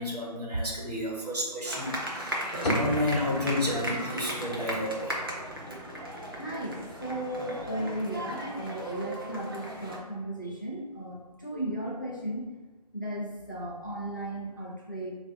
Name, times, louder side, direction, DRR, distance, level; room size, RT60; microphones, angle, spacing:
voice 1, 0.0-5.2, left 1 dB, 65° right, -2 dB, 1.1 m, -31 dB
sound 1, 1.6-10.0, right 1 dB, 35° right, 0.5 m, -36 dB
sound 2, 2.7-9.4, equal, 65° left, 0.7 m, -38 dB
voice 2, 6.3-12.4 12.9-15.1, right 1 dB, 30° left, -4 dB, 0.4 m, -35 dB
2.8 x 2.5 x 3.6 m, 1.2 s
figure-of-eight pair, 175°, 21 cm